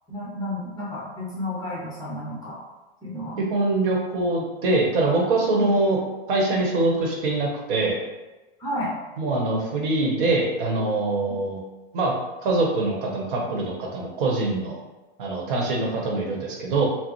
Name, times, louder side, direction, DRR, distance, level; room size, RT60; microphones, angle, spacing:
voice 1, 0.1-2.6 3.0-3.4 5.6-5.7 8.6-8.9, left 1 dB, 10° left, -6 dB, 1.0 m, -31 dB
voice 2, 3.4-6.0 6.3-8.0 9.2-11.6 11.9-12.1 12.4-14.8 15.2-16.9, right 2 dB, 55° right, -1 dB, 1.0 m, -23 dB
4.0 x 2.0 x 3.0 m, 1.1 s
hypercardioid pair, 135°, 31 cm